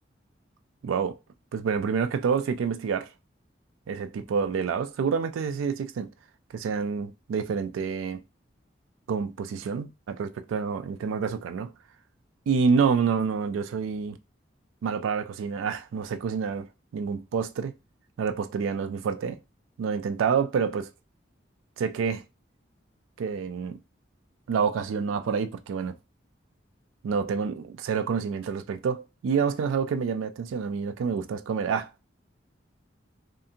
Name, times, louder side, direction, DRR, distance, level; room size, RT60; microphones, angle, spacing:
voice 1, 0.8-1.2 1.5-3.1 3.9-6.1 6.5-8.2 9.1-11.7 12.5-14.2 14.8-16.7 16.9-17.7 18.2-19.4 19.8-20.9 21.8-22.2 23.2-23.8 24.5-26.0 27.0-31.9, right 6 dB, 90° right, 0.3 m, -28 dB
2.5 x 2.5 x 2.7 m
head